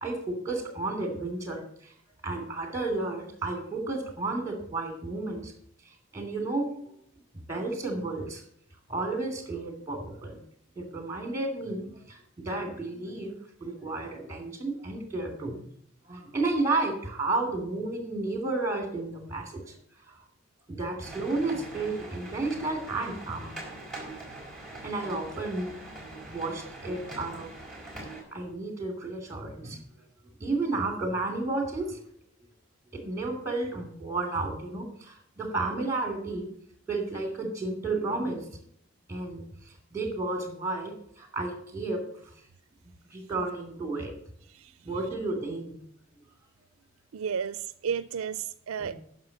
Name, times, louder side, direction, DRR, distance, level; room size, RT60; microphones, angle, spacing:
voice 1, 0.0-1.9 2.2-5.5 5.8-7.0 7.3-8.4 8.9-10.4 10.8-13.3 13.6-15.6 16.0-19.7 20.1-20.2 20.7-23.6 24.8-25.8 26.3-27.5 28.3-29.8 30.4-32.0 32.9-36.5 36.9-38.6 39.1-42.3 43.1-44.1 44.8-45.7 48.8-49.0, right 2 dB, 15° right, 2.7 m, -32 dB
sound 1, 21.0-28.2, right 2 dB, ahead, 4.1 m, -42 dB
voice 2, 47.1-49.0, right 7 dB, 75° right, 0.4 m, -33 dB
9.4 x 6.7 x 8.9 m
head